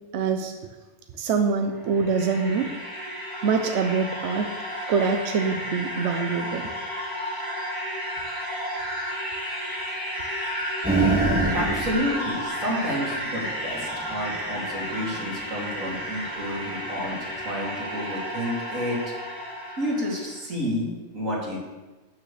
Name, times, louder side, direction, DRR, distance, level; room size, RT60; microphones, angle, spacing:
voice 1, 0.1-0.5 1.2-2.7 3.4-4.5 4.9-6.7, right 5 dB, 65° right, 6 dB, 1.0 m, -24 dB
sound 1, 1.7-20.3, equal, 15° left, 1.7 m, -32 dB
sound 2, 10.8-16.7 17.0-17.1, right 3 dB, 5° right, 1.8 m, -27 dB
voice 2, 11.0-19.0 19.8-21.6, equal, 90° right, -5 dB, 3.2 m, -30 dB
12.5 x 8.9 x 3.3 m, 1.2 s
omnidirectional pair, 1.3 m